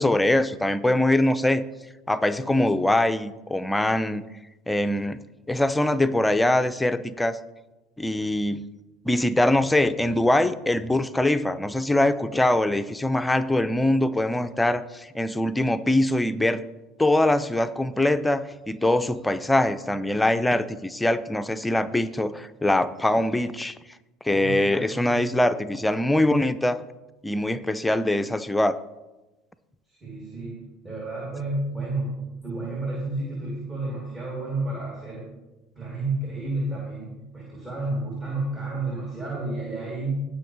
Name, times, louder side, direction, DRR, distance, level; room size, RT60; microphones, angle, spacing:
voice 1, 0.0-1.6 2.1-4.2 4.7-5.2 5.5-7.4 8.0-8.6 9.0-16.6 17.0-23.8 24.2-26.8 27.2-28.8, left 1 dB, 10° left, 12 dB, 0.6 m, -23 dB
voice 2, 24.3-25.1 29.9-35.3 35.7-40.2, right 2 dB, 25° right, -4 dB, 3.2 m, -31 dB
18.0 x 6.1 x 3.3 m, 1.1 s
figure-of-eight pair, 65°, 0 cm